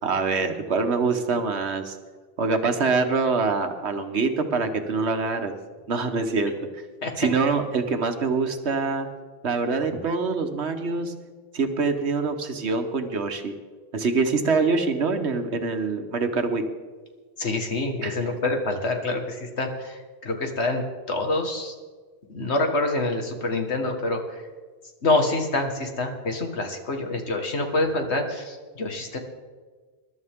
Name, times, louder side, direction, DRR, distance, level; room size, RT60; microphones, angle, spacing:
voice 1, 0.0-2.0 2.4-5.5 5.9-6.8 7.2-9.1 9.4-11.1 11.5-13.5 13.9-16.6 18.0-18.1, right 4 dB, 85° right, 6 dB, 1.5 m, -25 dB
voice 2, 17.4-21.7 22.3-24.4 25.0-29.2, left 2 dB, 85° left, 4 dB, 2.0 m, -26 dB
21.5 x 12.0 x 3.7 m, 1.4 s
omnidirectional pair, 1.1 m